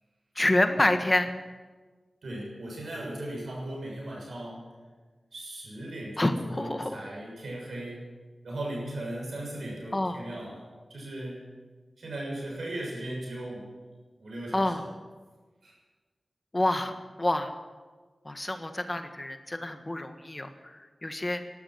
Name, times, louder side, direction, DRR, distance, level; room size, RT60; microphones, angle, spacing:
voice 1, 0.3-1.3 6.2-6.9 9.9-10.2 14.5-14.8 16.5-17.5 18.2-21.4, left 1 dB, 30° left, 7 dB, 1.6 m, -28 dB
voice 2, 2.2-4.7 5.3-8.1 8.4-11.4 12.0-13.7 14.2-14.7 15.6-15.7, right 1 dB, 85° right, -2 dB, 6.6 m, -37 dB
13.0 x 12.0 x 9.0 m, 1.4 s
cardioid pair, 40°, 0 cm